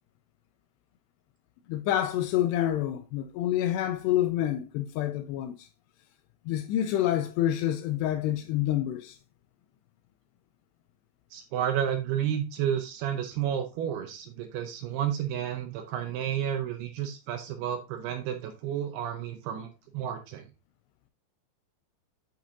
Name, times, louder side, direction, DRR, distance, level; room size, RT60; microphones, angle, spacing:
voice 1, 1.7-5.7 6.5-9.2, left 12 dB, 80° left, 2.5 m, -28 dB
voice 2, 11.3-20.5, right 9 dB, 75° right, 2.5 m, -31 dB
8.8 x 6.1 x 2.5 m
omnidirectional pair, 5.2 m